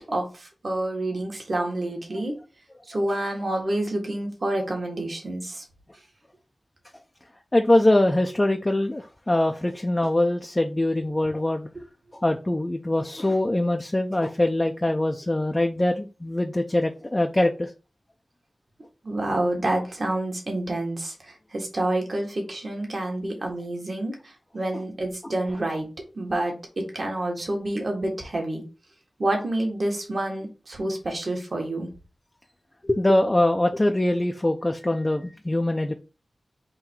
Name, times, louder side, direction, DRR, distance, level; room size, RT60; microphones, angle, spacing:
voice 1, 0.1-2.3 2.9-5.6 19.0-25.9 26.1-28.6 29.2-31.9, right 1 dB, 60° right, 1 dB, 1.5 m, -28 dB
voice 2, 7.5-11.7 12.2-17.7 32.8-35.9, left 1 dB, 25° left, 4 dB, 0.5 m, -23 dB
3.9 x 2.7 x 4.4 m, 0.32 s
cardioid pair, 50°, 0 cm